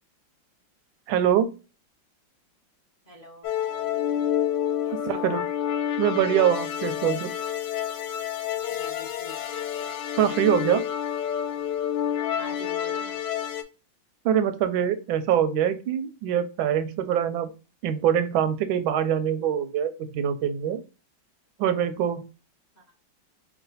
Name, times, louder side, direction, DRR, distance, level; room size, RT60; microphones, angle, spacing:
voice 1, 1.1-1.5 5.1-5.4 6.0-7.3 10.2-10.8 14.2-17.5 17.8-20.8 21.6-22.3, right 9 dB, 90° right, 10 dB, 1.4 m, -24 dB
voice 2, 3.1-3.5 4.8-5.4 8.7-9.6 12.3-13.2 22.8-22.9, left 1 dB, 50° left, -1 dB, 0.5 m, -46 dB
sound 1, 3.4-13.6, left 10 dB, 70° left, 1.2 m, -29 dB
3.2 x 2.9 x 3.9 m, 0.32 s
omnidirectional pair, 2.1 m